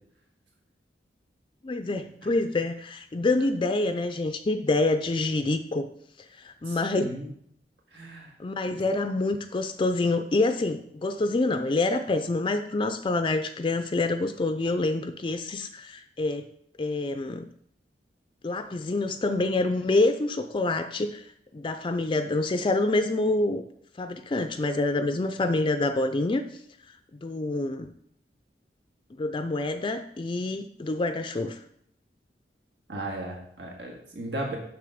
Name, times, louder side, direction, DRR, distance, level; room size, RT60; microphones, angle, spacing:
voice 1, 1.6-5.9 6.4-7.2 8.4-16.5 16.8-17.5 18.4-21.3 21.5-23.6 24.0-26.4 27.2-27.9 29.2-31.6, left 2 dB, 30° left, 8 dB, 0.4 m, -27 dB
voice 2, 6.7-7.3 7.9-8.3 32.9-34.6, right 1 dB, 80° right, -1 dB, 1.9 m, -35 dB
6.8 x 6.1 x 5.0 m, 0.70 s
head